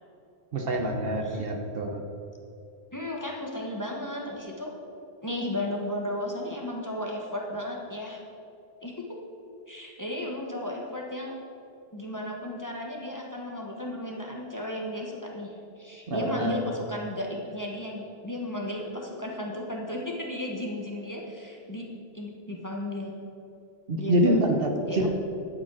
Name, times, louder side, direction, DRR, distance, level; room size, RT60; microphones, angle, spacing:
voice 1, 0.5-2.0 16.1-16.5 23.9-25.1, right 1 dB, 60° right, 3 dB, 1.1 m, -26 dB
voice 2, 2.9-4.7 5.2-8.2 8.8-9.2 9.7-11.4 11.9-23.1 24.0-24.4 24.9-25.1, left 1 dB, 20° left, -1 dB, 1.1 m, -34 dB
11.5 x 5.1 x 6.2 m, 2.7 s
omnidirectional pair, 1.1 m